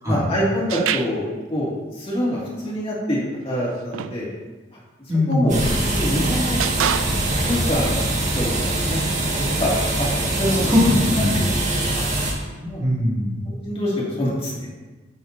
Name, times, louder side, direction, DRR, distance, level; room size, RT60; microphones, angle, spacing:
voice 1, 0.0-4.3 5.3-6.6 7.3-7.9 8.3-9.7 10.0-10.1 10.3-10.7 11.3-11.5 11.7-12.0 12.6-12.8 13.5-14.7, equal, 30° left, -5 dB, 2.3 m, -25 dB
sound 1, 0.7-1.4 3.6-4.2 5.3-5.5 6.6-7.4, right 8 dB, 90° right, 0.4 m, -26 dB
voice 2, 5.1-5.6 10.4-11.5 12.6-13.4, left 1 dB, 15° right, -7 dB, 2.3 m, -21 dB
sound 2, 5.5-12.3, right 1 dB, 40° right, 1.7 m, -23 dB
13.5 x 6.3 x 2.7 m, 1.2 s
head